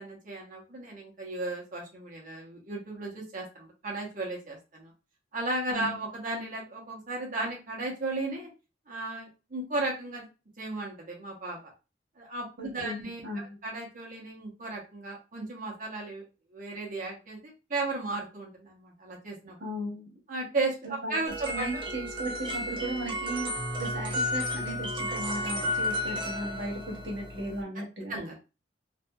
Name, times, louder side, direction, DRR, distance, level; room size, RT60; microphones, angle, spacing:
voice 1, 0.0-4.9 5.3-8.5 8.9-10.3 10.6-11.6 12.2-13.2 13.6-16.2 16.5-19.6 20.3-21.8 27.8-27.9 28.1-28.4, right 2 dB, 45° right, -1 dB, 0.9 m, -35 dB
voice 2, 12.6-13.0 13.2-13.6 19.6-20.1 20.8-21.2 21.5-28.2, right 1 dB, 80° right, -1 dB, 1.1 m, -36 dB
sound 1, 21.3-27.6, left 1 dB, 30° right, 0.5 m, -33 dB
2.6 x 2.5 x 2.2 m, 0.30 s
head